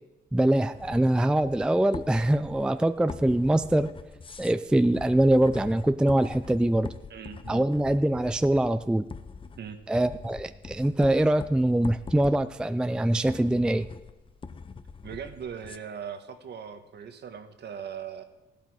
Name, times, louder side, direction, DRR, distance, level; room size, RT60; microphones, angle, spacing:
voice 1, 0.3-3.9 4.4-6.9 7.5-9.1 9.9-13.9, right 1 dB, 5° right, 12 dB, 0.4 m, -23 dB
sound 1, 0.7-15.8, left 5 dB, 25° left, 0.7 m, -43 dB
voice 2, 7.1-7.6 9.6-9.8 15.0-18.2, right 7 dB, 60° right, 8 dB, 1.4 m, -39 dB
15.0 x 12.0 x 4.8 m, 1.0 s
cardioid pair, 90°, 20 cm